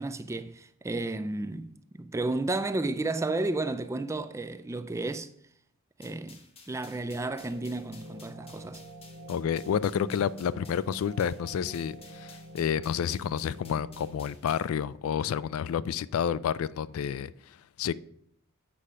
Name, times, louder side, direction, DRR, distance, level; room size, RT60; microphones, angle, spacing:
voice 1, 0.0-5.3 6.0-6.4 6.7-8.8, right 2 dB, 15° right, 0.3 m, -32 dB
sound 1, 6.0-14.7, left 4 dB, 30° left, 1.0 m, -55 dB
sound 2, 7.4-14.1, equal, 70° right, 1.0 m, -47 dB
voice 2, 9.3-17.9, left 8 dB, 75° left, 0.3 m, -30 dB
8.4 x 4.9 x 5.5 m
head